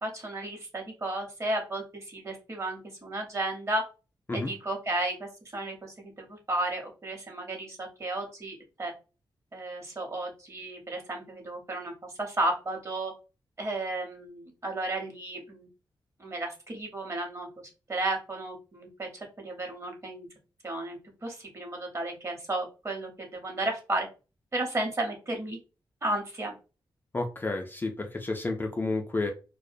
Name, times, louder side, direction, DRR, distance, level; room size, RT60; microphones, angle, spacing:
voice 1, 0.0-3.8 4.3-8.9 9.5-13.1 13.6-15.7 16.2-17.5 17.9-20.3 20.6-24.1 24.5-25.6 26.0-26.5, right 1 dB, 35° right, 2 dB, 0.9 m, -33 dB
voice 2, 27.1-29.3, left 2 dB, 25° left, 3 dB, 0.4 m, -31 dB
2.3 x 2.1 x 2.5 m, 0.31 s
wide cardioid pair, 100°, 8 cm